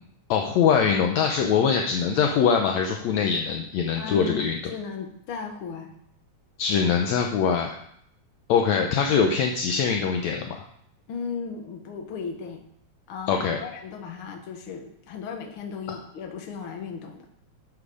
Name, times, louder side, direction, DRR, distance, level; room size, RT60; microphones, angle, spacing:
voice 1, 0.3-4.6 6.6-7.8 8.5-10.6 13.3-13.6, left 6 dB, 70° left, 3 dB, 1.8 m, -23 dB
voice 2, 3.9-5.9 11.1-12.6 13.1-17.3, left 6 dB, 50° left, 4 dB, 1.7 m, -36 dB
12.0 x 7.4 x 4.9 m, 0.72 s
omnidirectional pair, 3.7 m